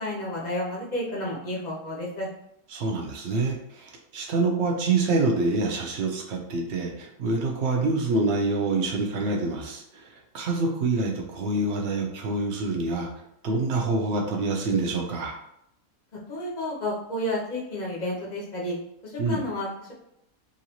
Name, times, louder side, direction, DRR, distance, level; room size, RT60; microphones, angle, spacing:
voice 1, 0.0-2.3 16.3-18.8 19.0-19.9, left 1 dB, 40° left, -5 dB, 0.7 m, -31 dB
voice 2, 2.7-13.1 13.4-15.3 19.2-19.4, right 3 dB, 60° right, 1 dB, 0.8 m, -26 dB
3.1 x 2.6 x 2.9 m, 0.77 s
omnidirectional pair, 1.5 m